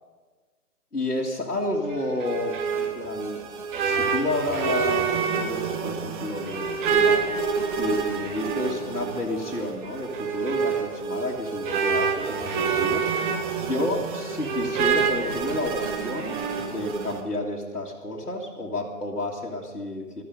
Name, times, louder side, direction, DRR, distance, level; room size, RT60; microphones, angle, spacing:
voice 1, 0.9-3.4 3.8-7.3 7.8-13.3 13.6-20.2, left 2 dB, 90° left, -3 dB, 2.1 m, -31 dB
sound 1, 1.9-17.2, right 6 dB, 30° right, 1.6 m, -27 dB
16.0 x 13.5 x 5.3 m, 1.3 s
figure-of-eight pair, 125°, 45 cm